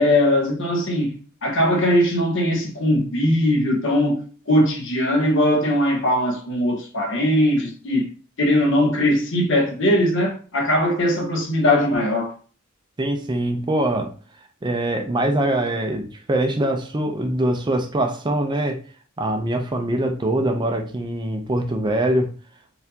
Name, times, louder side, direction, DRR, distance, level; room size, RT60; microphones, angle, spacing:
voice 1, 0.0-4.2 4.5-8.1 8.4-12.3, left 1 dB, 60° left, 0.9 m, -20 dB
voice 2, 13.0-14.1 14.6-18.8 19.2-22.3, right 1 dB, 20° right, 0.4 m, -23 dB
4.2 x 2.5 x 2.8 m
head